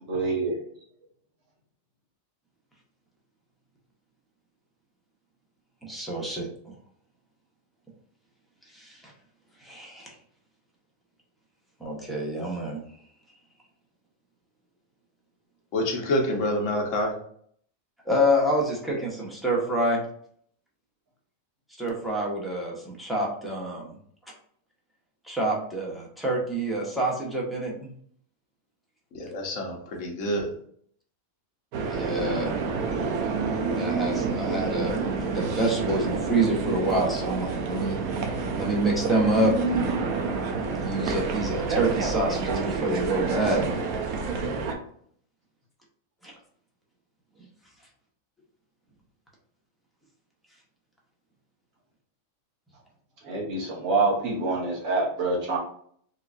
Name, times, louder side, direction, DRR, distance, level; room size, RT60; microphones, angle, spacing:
voice 1, 0.1-0.5 53.2-55.6, right 3 dB, 75° right, -3 dB, 1.6 m, -26 dB
voice 2, 5.8-6.7 8.7-9.1 9.6-10.1 11.8-12.8 18.1-20.0 21.8-24.0 25.3-27.9 31.9-32.6 33.7-38.0 38.6-39.9 40.8-43.8 46.2-46.3, right 1 dB, ahead, -4 dB, 0.7 m, -27 dB
voice 3, 15.7-17.2 29.1-30.5, left 1 dB, 65° left, 0 dB, 1.2 m, -27 dB
sound 1, 31.7-44.7, right 4 dB, 90° right, 1.1 m, -28 dB
4.5 x 2.3 x 2.5 m, 0.62 s
omnidirectional pair, 1.4 m